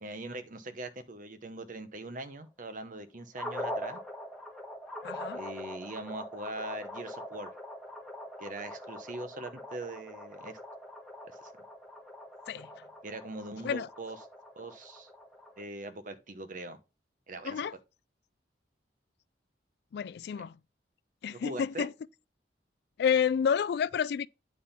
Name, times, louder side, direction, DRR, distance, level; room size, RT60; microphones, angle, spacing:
voice 1, 0.0-4.0 5.3-7.5 8.4-10.6 11.4-11.5 13.0-14.2 14.6-15.1 15.6-16.8 17.3-17.7 21.3-21.9, right 2 dB, 50° right, 1.0 m, -41 dB
sound 1, 3.4-15.6, left 1 dB, 5° left, 1.4 m, -43 dB
voice 2, 5.0-5.4 12.5-12.7 13.6-13.9 17.4-17.7 19.9-20.6 21.2-21.9 23.0-24.3, left 7 dB, 60° left, 0.3 m, -29 dB
9.3 x 3.6 x 5.7 m
head